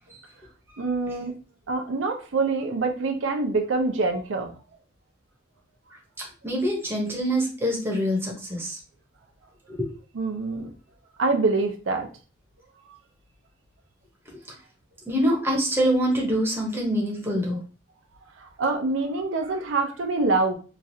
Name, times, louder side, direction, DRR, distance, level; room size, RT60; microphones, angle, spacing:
voice 1, 0.8-1.3 1.7-4.5 10.1-10.7 11.2-12.1 18.4-20.5, right 3 dB, 85° right, 5 dB, 0.5 m, -25 dB
voice 2, 6.4-8.8 9.7-9.9 15.1-17.6, equal, 10° right, -2 dB, 0.7 m, -25 dB
3.0 x 2.4 x 2.6 m, 0.36 s
head